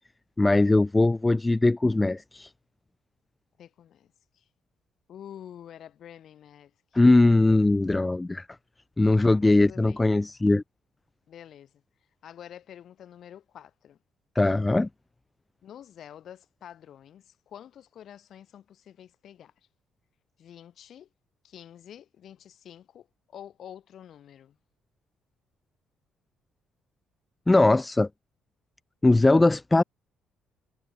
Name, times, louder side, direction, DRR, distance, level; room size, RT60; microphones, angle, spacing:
voice 1, 0.4-2.5 6.9-8.5 9.0-10.6 14.4-14.9 27.5-28.1 29.0-29.8, left 2 dB, 15° left, 0.5 m, -20 dB
voice 2, 3.6-4.4 5.1-6.7 9.1-10.0 11.3-11.7 12.2-14.0 15.6-19.5 20.4-21.1 21.4-24.6, left 10 dB, 60° left, 2.4 m, -48 dB
cardioid pair, 100°, 0 cm